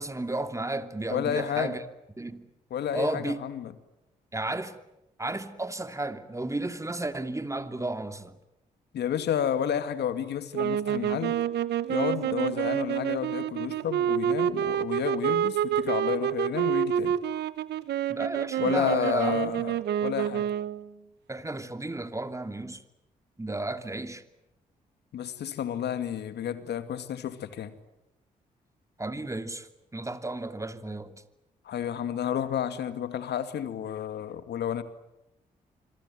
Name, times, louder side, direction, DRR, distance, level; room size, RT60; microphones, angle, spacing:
voice 1, 0.0-1.8 2.2-2.5 2.9-3.4 4.3-4.8 5.2-8.4 18.1-19.5 21.3-22.8 23.4-24.2 29.0-31.2, right 2 dB, 15° right, 2.7 m, -33 dB
voice 2, 1.1-1.8 2.7-3.7 8.9-11.4 11.9-17.1 18.6-19.7 20.0-20.4 25.1-27.7 31.7-34.8, left 9 dB, 70° left, 2.3 m, -31 dB
sound 1, 10.5-20.9, right 10 dB, 75° right, 1.0 m, -28 dB
26.0 x 24.0 x 9.3 m
hypercardioid pair, 45°, 18 cm